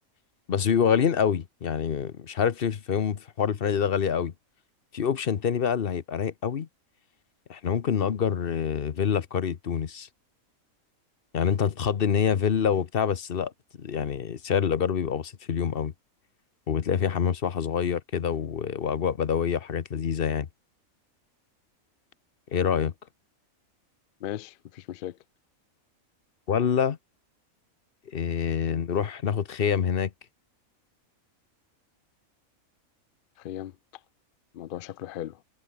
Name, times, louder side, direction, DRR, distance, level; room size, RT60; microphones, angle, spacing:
voice 1, 0.5-4.3 4.9-6.7 7.5-10.1 11.3-13.5 13.8-15.9 16.7-20.5 22.5-22.9 26.5-27.0 28.1-30.1, left 7 dB, 45° left, 1.0 m, -26 dB
voice 2, 24.2-25.2 33.4-33.7 34.5-35.4, left 12 dB, 65° left, 0.5 m, -37 dB
omnidirectional pair, 1.4 m